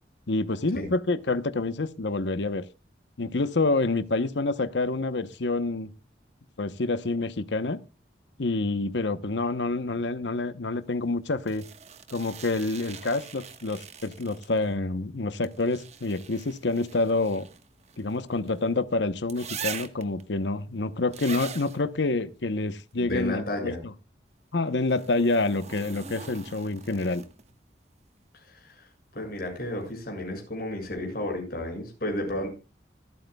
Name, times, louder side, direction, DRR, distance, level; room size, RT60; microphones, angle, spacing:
voice 1, 0.3-2.6 3.2-5.9 6.6-7.8 8.4-11.6 12.1-17.5 18.0-23.9 24.5-27.2, left 3 dB, 80° left, 0.9 m, -27 dB
sound 1, 11.5-14.7 15.4-18.6 19.3-20.2 21.1-21.8 24.8-27.5 29.4-29.5, right 7 dB, 40° right, 1.3 m, -42 dB
voice 2, 22.9-23.8 28.3-28.9 29.1-32.5, left 1 dB, 55° left, 6.6 m, -32 dB
26.5 x 9.3 x 2.3 m
head